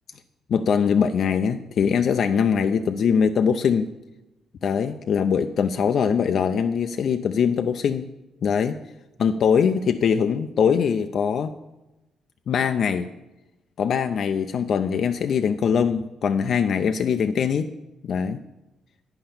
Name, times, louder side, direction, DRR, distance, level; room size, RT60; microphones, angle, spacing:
voice 1, 0.5-3.9 4.6-8.1 8.4-8.8 9.2-11.5 12.5-13.1 13.8-17.7 18.0-18.4, left 7 dB, 60° left, 8 dB, 0.4 m, -22 dB
9.8 x 5.8 x 7.0 m, 1.0 s
cardioid pair, 90°, 0 cm